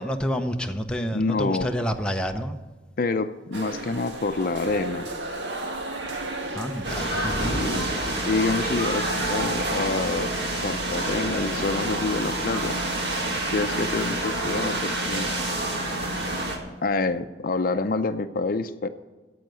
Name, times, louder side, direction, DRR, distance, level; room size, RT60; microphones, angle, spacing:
voice 1, 0.0-2.6 6.5-7.6, equal, 5° left, 4 dB, 0.7 m, -28 dB
voice 2, 1.1-1.7 3.0-5.1 7.6-7.9 8.2-10.3 10.6-12.7 13.5-15.3 16.8-18.9, left 3 dB, 55° left, 10 dB, 0.6 m, -27 dB
sound 1, 3.5-7.3, right 2 dB, 90° right, 1.5 m, -34 dB
sound 2, 6.8-16.6, right 1 dB, 75° right, 2.1 m, -27 dB
10.5 x 7.8 x 9.2 m, 1.3 s
head